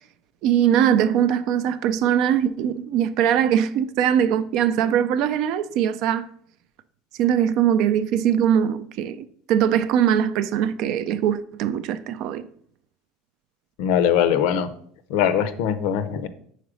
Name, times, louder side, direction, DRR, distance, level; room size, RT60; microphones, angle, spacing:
voice 1, 0.4-6.3 7.2-12.5, right 9 dB, 60° right, 0.4 m, -21 dB
voice 2, 13.8-14.7 15.1-16.3, left 9 dB, 75° left, 0.5 m, -21 dB
5.0 x 4.0 x 4.9 m
cardioid pair, 135°, 0 cm